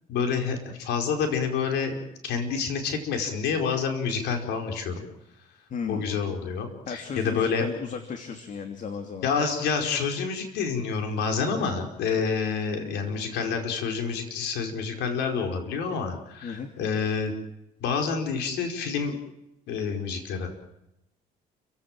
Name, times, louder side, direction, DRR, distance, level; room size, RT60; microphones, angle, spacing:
voice 1, 0.1-1.9 2.2-5.0 5.9-7.7 9.2-17.3 17.8-19.2 19.7-20.5, left 5 dB, 85° left, 4 dB, 4.8 m, -28 dB
voice 2, 5.7-6.1 6.9-9.3 16.4-16.7, left 6 dB, 50° left, 6 dB, 2.9 m, -35 dB
29.5 x 17.0 x 7.6 m, 0.87 s
cardioid pair, 110°, 17 cm